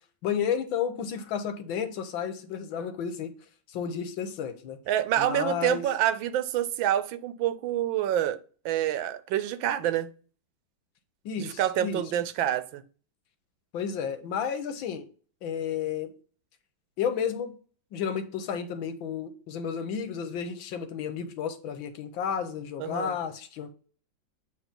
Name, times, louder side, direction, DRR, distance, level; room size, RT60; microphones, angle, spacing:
voice 1, 0.2-3.3 3.7-4.8 5.2-5.8 11.2-12.0 13.7-15.1 15.4-16.1 17.0-17.5 17.9-23.7, left 7 dB, 85° left, 1.7 m, -32 dB
voice 2, 4.9-8.4 8.6-10.1 11.4-12.8 22.8-23.1, right 11 dB, 80° right, 1.4 m, -27 dB
8.2 x 3.0 x 5.2 m
omnidirectional pair, 2.1 m